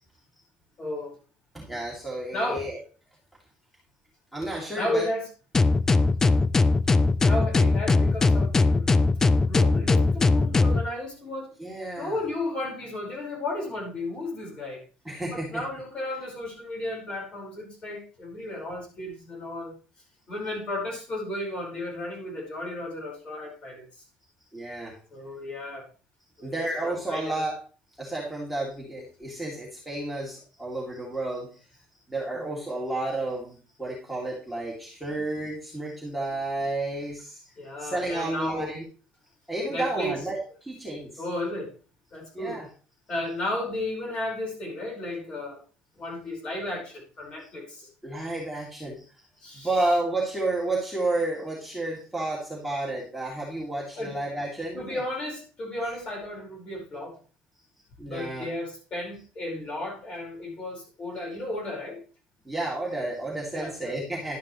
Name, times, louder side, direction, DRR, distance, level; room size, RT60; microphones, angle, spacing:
voice 1, 0.8-1.1 2.3-2.7 4.7-5.3 7.2-8.9 9.2-11.5 12.0-14.8 15.3-19.7 20.3-24.0 25.1-25.9 26.4-27.5 32.3-32.6 37.6-38.7 39.7-40.1 41.2-41.7 42.1-42.6 43.1-45.6 45.9-47.9 49.4-49.7 54.0-54.2 54.7-57.2 58.1-62.0 63.5-64.0, left 1 dB, 30° left, 5.0 m, -34 dB
voice 2, 1.5-2.8 4.3-5.1 11.6-12.2 15.0-15.6 24.5-25.0 26.4-27.6 28.0-31.5 32.1-37.4 37.8-38.8 39.5-41.2 42.3-42.7 48.0-49.0 49.5-55.0 58.0-58.5 62.5-64.4, right 2 dB, ahead, 2.8 m, -31 dB
sound 1, 5.5-10.8, left 3 dB, 15° left, 0.4 m, -20 dB
12.0 x 10.0 x 3.2 m
cardioid pair, 165°, 3 cm